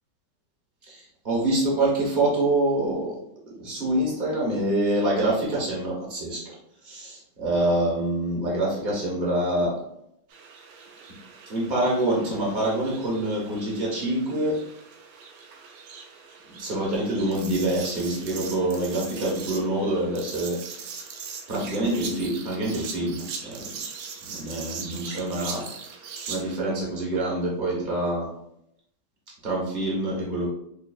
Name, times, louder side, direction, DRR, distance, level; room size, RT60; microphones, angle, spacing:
voice 1, 0.9-3.2 3.6-6.6 6.8-9.8 11.5-14.6 16.5-21.1 21.5-23.7 24.3-25.6 26.3-28.3 29.4-30.5, right 1 dB, 40° right, -4 dB, 0.6 m, -26 dB
sound 1, 10.3-26.6, right 5 dB, 85° right, 1.6 m, -40 dB
5.2 x 2.5 x 2.3 m, 0.75 s
omnidirectional pair, 2.3 m